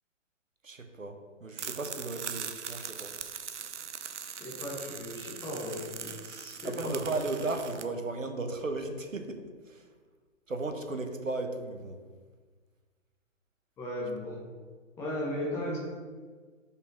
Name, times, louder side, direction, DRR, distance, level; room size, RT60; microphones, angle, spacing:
voice 1, 0.6-3.1 6.6-9.9 10.5-12.0, right 2 dB, 80° right, 5 dB, 1.1 m, -35 dB
sound 1, 1.6-7.8, right 7 dB, 65° right, 0.7 m, -41 dB
voice 2, 4.4-7.0 13.8-14.4 15.0-15.8, left 1 dB, 5° left, -4 dB, 0.7 m, -36 dB
5.5 x 4.2 x 5.4 m, 1.5 s
figure-of-eight pair, 130°, 38 cm